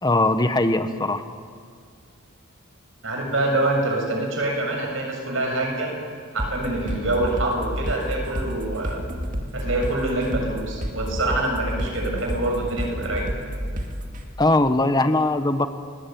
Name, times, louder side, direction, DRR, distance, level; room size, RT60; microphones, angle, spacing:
voice 1, 0.0-1.2 14.4-15.7, left 2 dB, 20° left, 9 dB, 1.1 m, -20 dB
voice 2, 3.0-5.9 6.3-9.0 9.5-13.3, right 2 dB, 70° right, 2 dB, 7.2 m, -25 dB
sound 1, 6.4-14.2, equal, 40° right, 2.6 m, -30 dB
30.0 x 20.5 x 9.3 m, 2.2 s
head